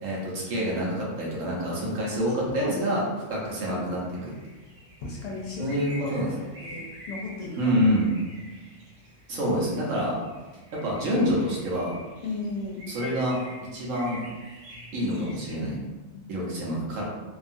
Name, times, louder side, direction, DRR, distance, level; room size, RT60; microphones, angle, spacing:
voice 1, 0.0-3.0 3.3-4.0 5.6-6.3 7.6-8.1 9.3-10.2 10.8-12.0 12.9-13.4 13.7-14.2 14.9-15.8 16.3-17.0, equal, 80° right, -4 dB, 1.2 m, -27 dB
voice 2, 2.2-2.8 3.6-3.9 5.0-6.1 6.6-7.7 12.2-12.9 15.1-16.2, left 3 dB, 65° left, -3 dB, 0.8 m, -35 dB
sound 1, 4.0-15.6, equal, 60° right, 0.6 m, -46 dB
2.8 x 2.4 x 2.5 m, 1.2 s
omnidirectional pair, 1.3 m